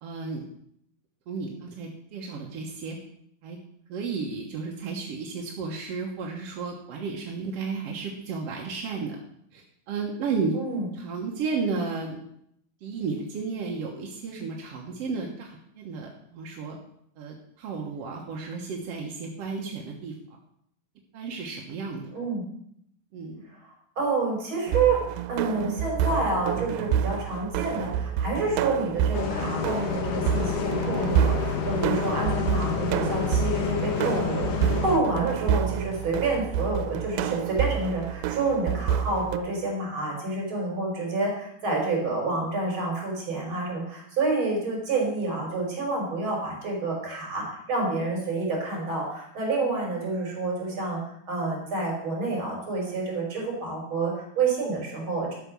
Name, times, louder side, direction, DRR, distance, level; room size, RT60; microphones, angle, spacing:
voice 1, 0.0-0.4 1.3-3.0 3.4-3.6 3.9-9.2 9.5-10.6 10.9-12.2 12.8-16.8 17.2-20.1 21.1-22.1 23.1-23.4 31.5-31.9, right 4 dB, 60° right, 0 dB, 1.7 m, -33 dB
voice 2, 10.5-10.9 22.1-22.4 23.6-25.0 25.3-51.0 51.3-55.3, right 3 dB, 35° right, -1 dB, 4.5 m, -28 dB
sound 1, 24.7-39.4, right 10 dB, 90° right, 2.5 m, -28 dB
Bus, 29.1-35.0, left 8 dB, 70° left, 2.5 m, -29 dB
12.0 x 6.8 x 6.2 m, 0.71 s
omnidirectional pair, 4.3 m